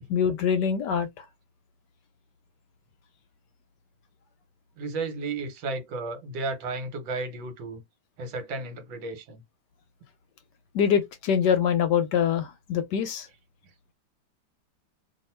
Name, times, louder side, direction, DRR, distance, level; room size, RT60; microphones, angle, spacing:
voice 1, 0.1-1.2 10.7-13.3, left 7 dB, 70° left, 1.1 m, -24 dB
voice 2, 4.8-7.8 8.2-9.4, right 3 dB, 75° right, 1.7 m, -33 dB
2.9 x 2.8 x 4.3 m
omnidirectional pair, 2.1 m